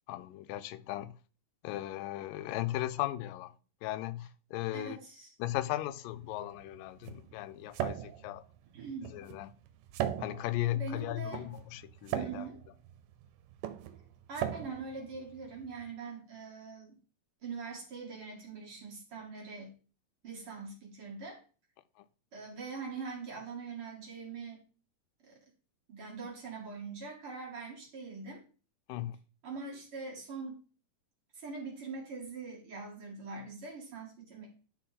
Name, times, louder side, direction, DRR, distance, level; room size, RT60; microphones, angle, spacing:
voice 1, 0.1-1.2 1.6-3.5 3.8-5.0 5.4-8.4 9.1-9.5 10.2-12.5 28.9-29.2, left 15 dB, 90° left, 2.2 m, -36 dB
voice 2, 4.7-5.3 8.7-9.1 10.7-11.4 12.1-12.5 14.3-16.9 17.4-19.8 20.2-21.4 22.3-24.6 25.3-25.4 25.9-28.4 29.4-30.6 31.3-34.5, right 4 dB, 45° right, 2.5 m, -43 dB
sound 1, 6.1-15.9, right 11 dB, 90° right, 2.3 m, -40 dB
11.0 x 4.0 x 4.1 m
omnidirectional pair, 3.8 m